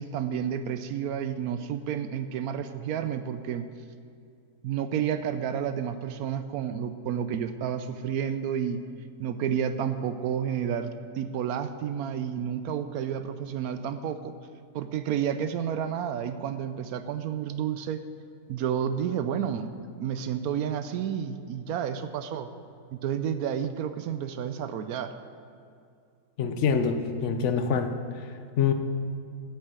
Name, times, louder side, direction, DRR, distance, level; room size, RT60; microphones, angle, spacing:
voice 1, 0.0-3.7 4.6-8.9 9.2-14.3 14.7-18.0 18.5-19.7 20.0-22.5 23.0-25.1, right 8 dB, 75° right, 10 dB, 1.0 m, -30 dB
voice 2, 26.4-27.9 28.6-28.7, left 6 dB, 55° left, 8 dB, 1.0 m, -25 dB
9.9 x 6.9 x 8.1 m, 2.4 s
omnidirectional pair, 1.7 m